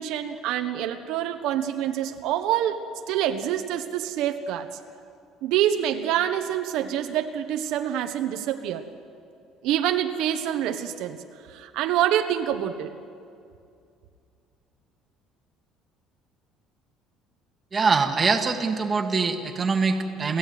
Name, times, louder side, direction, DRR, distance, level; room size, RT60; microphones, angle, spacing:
voice 1, 0.0-4.7 5.4-8.9 9.6-11.2 11.5-12.9, right 11 dB, 70° right, 7 dB, 1.2 m, -26 dB
voice 2, 17.7-20.4, right 4 dB, 20° right, 4 dB, 1.7 m, -23 dB
29.5 x 15.5 x 9.5 m, 2.4 s
cardioid pair, 155°, 0 cm